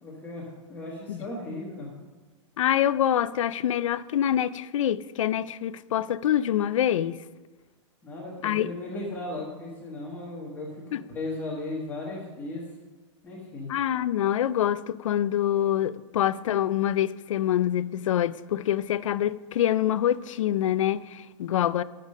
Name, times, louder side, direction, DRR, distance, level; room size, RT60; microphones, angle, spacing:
voice 1, 0.0-1.9 8.0-12.6 13.2-13.7, left 2 dB, 10° left, 1.2 m, -36 dB
voice 2, 2.6-7.2 8.4-8.7 10.9-11.0 13.7-21.8, left 11 dB, 90° left, 0.4 m, -25 dB
8.2 x 6.5 x 5.4 m
supercardioid pair, 175°, 16 cm